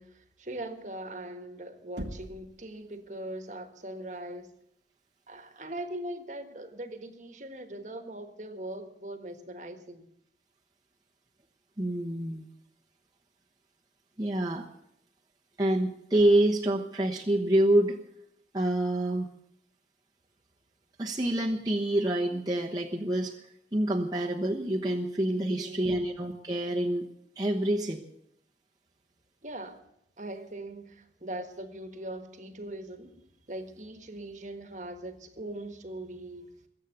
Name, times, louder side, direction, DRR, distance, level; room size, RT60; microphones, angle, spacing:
voice 1, 0.0-4.5 5.3-10.1 25.5-26.1 29.4-29.8 30.2-36.5, right 1 dB, 40° right, 8 dB, 1.6 m, -41 dB
Knock, 2.0-2.6, right 1 dB, 80° right, 1.4 m, -39 dB
voice 2, 11.8-12.4 14.2-14.7 15.6-18.0 18.5-19.3 21.0-23.3 23.7-27.1 27.4-28.0, right 1 dB, 20° right, -2 dB, 1.1 m, -27 dB
21.5 x 8.3 x 8.0 m, 0.76 s
head